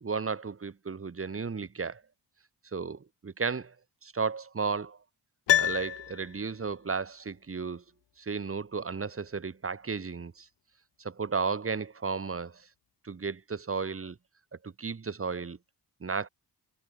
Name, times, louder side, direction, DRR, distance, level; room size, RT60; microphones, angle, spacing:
voice 1, 0.0-2.0 2.7-3.7 4.0-5.0 5.6-7.8 8.2-10.5 11.0-12.7 13.0-14.2 14.5-15.6 16.0-16.3, right 5 dB, 30° right, 1.2 m, -34 dB
Piano, 5.5-6.7 7.0-7.1, left 11 dB, 85° left, 0.9 m, -28 dB
cardioid pair, 75°, 42 cm